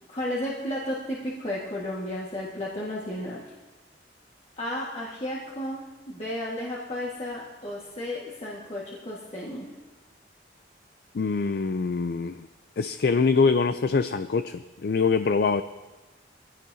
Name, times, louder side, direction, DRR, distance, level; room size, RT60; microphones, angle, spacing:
voice 1, 0.1-3.4 4.6-9.7, left 1 dB, 35° left, -5 dB, 1.6 m, -33 dB
voice 2, 11.1-12.5 12.8-15.6, left 4 dB, 55° left, 10 dB, 0.4 m, -24 dB
22.5 x 15.5 x 2.7 m, 1.2 s
head